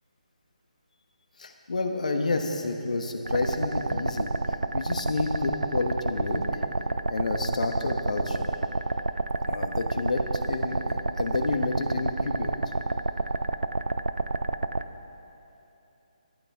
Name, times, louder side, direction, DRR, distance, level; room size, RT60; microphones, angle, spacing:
voice 1, 1.4-4.3 4.7-6.4 7.1-8.5 9.4-12.5, left 3 dB, 65° left, 5 dB, 1.2 m, -29 dB
sound 1, 3.3-14.8, right 3 dB, 85° right, 0.4 m, -29 dB
14.5 x 12.5 x 3.5 m, 2.9 s
figure-of-eight pair, 150°, 4 cm